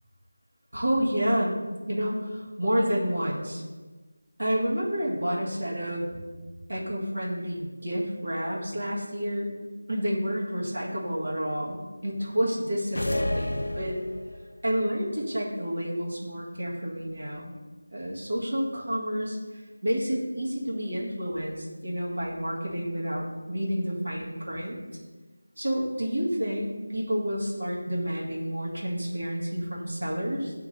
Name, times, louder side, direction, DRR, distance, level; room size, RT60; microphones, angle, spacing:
voice 1, 0.7-1.6 1.9-3.6 4.4-6.2 6.7-9.6 9.9-14.0 14.6-17.6 17.9-19.4 19.8-24.8 25.6-30.5, equal, 60° right, -4 dB, 1.8 m, -29 dB
sound 1, 12.9-14.5, left 1 dB, 55° left, 0.4 m, -30 dB
8.9 x 3.1 x 4.0 m, 1.3 s
figure-of-eight pair, 180°, 0 cm